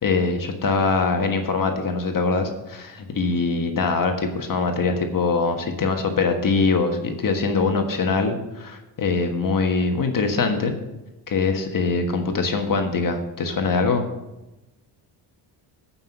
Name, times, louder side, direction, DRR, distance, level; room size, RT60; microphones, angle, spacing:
voice 1, 0.0-10.7 11.3-14.0, left 4 dB, 45° left, 5 dB, 1.5 m, -23 dB
9.0 x 5.8 x 8.2 m, 0.99 s
supercardioid pair, 75°, 48 cm